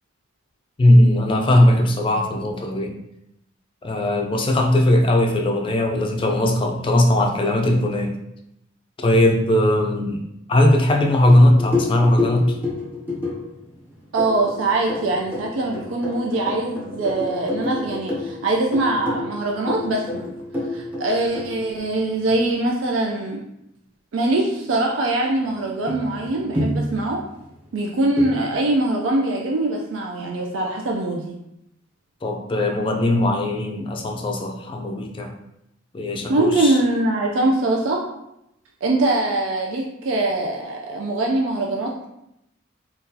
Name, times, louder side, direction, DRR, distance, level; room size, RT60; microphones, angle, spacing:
voice 1, 0.8-3.0 3.8-8.2 9.0-12.6 32.2-35.3 35.9-36.8, left 1 dB, 25° left, 2 dB, 0.4 m, -19 dB
sound 1, 11.3-22.5 25.4-25.5 25.9-27.6 28.2-28.5, left 2 dB, 10° right, 0.6 m, -29 dB
voice 2, 14.1-20.3 20.7-23.4 24.1-27.2 27.7-31.3 36.3-38.0 38.8-42.1, right 2 dB, 85° right, -1 dB, 0.4 m, -22 dB
3.7 x 2.3 x 2.7 m, 0.83 s
head